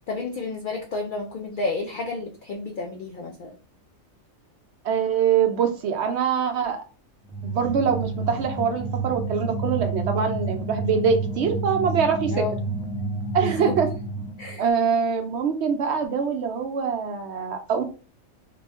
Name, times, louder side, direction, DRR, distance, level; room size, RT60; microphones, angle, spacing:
voice 1, 0.1-3.5 12.3-12.6 13.4-13.8 14.4-14.7, left 3 dB, 70° left, 1 dB, 0.4 m, -31 dB
voice 2, 4.8-6.8 7.4-12.4 13.3-13.9 14.6-17.8, right 7 dB, 65° right, 5 dB, 0.7 m, -24 dB
sound 1, 7.2-14.6, right 3 dB, 5° left, 0.3 m, -30 dB
2.9 x 2.2 x 4.1 m, 0.36 s
omnidirectional pair, 1.4 m